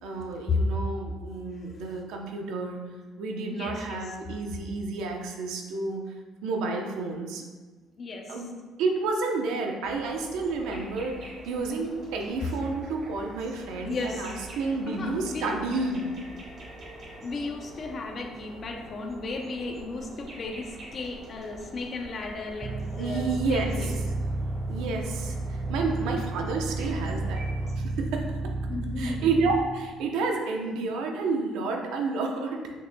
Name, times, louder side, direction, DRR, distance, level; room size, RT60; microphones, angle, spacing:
voice 1, 0.0-2.8 3.2-6.0 6.4-7.4 8.3-8.5 8.8-16.1 23.0-24.1 24.7-27.4 27.8-28.2 29.0-32.6, right 3 dB, 85° right, 2 dB, 0.9 m, -30 dB
voice 2, 3.5-4.2 7.4-7.5 8.0-8.4 13.8-14.4 14.9-15.6 17.2-23.9 28.7-29.3, left 3 dB, 35° left, 2 dB, 0.8 m, -34 dB
sound 1, 9.8-27.7, right 1 dB, 45° right, 1.5 m, -46 dB
sound 2, 22.6-29.6, right 2 dB, 30° right, 0.3 m, -32 dB
6.7 x 6.2 x 2.3 m, 1.4 s
cardioid pair, 150°, 0 cm